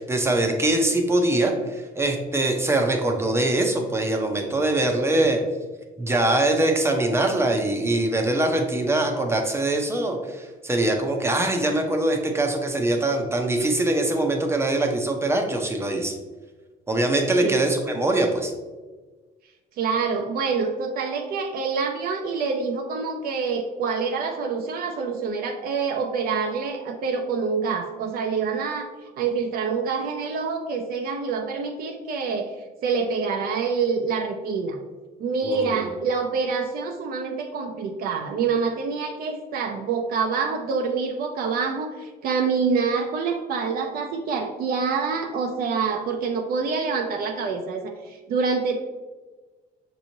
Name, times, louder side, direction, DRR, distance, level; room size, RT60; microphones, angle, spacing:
voice 1, 0.0-5.4 6.0-16.1 16.9-18.5 35.4-35.9, right 2 dB, 15° right, 3 dB, 0.6 m, -23 dB
voice 2, 17.4-17.7 19.8-28.9 29.2-32.5 32.8-34.8 35.2-48.8, right 5 dB, 60° right, 3 dB, 0.5 m, -26 dB
6.1 x 3.0 x 2.7 m, 1.3 s
cardioid pair, 110°, 17 cm